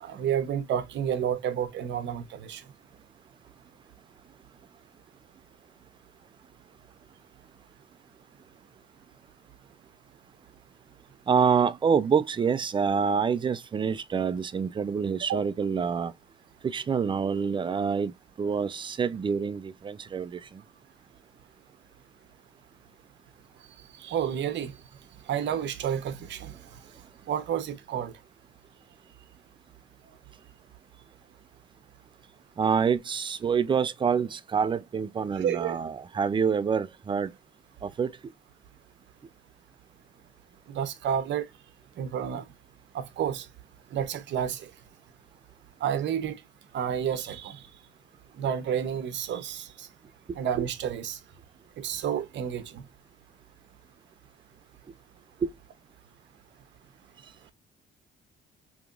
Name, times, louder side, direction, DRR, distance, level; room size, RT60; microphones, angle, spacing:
voice 1, 0.0-2.6 15.3-15.4 24.0-24.7 25.3-26.5 27.3-28.1 35.4-35.8 40.7-41.5 42.0-42.4 42.9-43.5 43.9-44.7 45.8-46.4 46.7-47.6 48.4-49.9 50.3-51.2 51.8-52.8, right 9 dB, 65° right, 0.8 m, -30 dB
voice 2, 11.3-16.1 16.6-18.1 18.4-20.4 32.6-37.3 37.8-38.1 55.4-55.5, right 6 dB, 25° right, 0.4 m, -26 dB
5.0 x 3.0 x 2.4 m
cardioid pair, 125°, 20 cm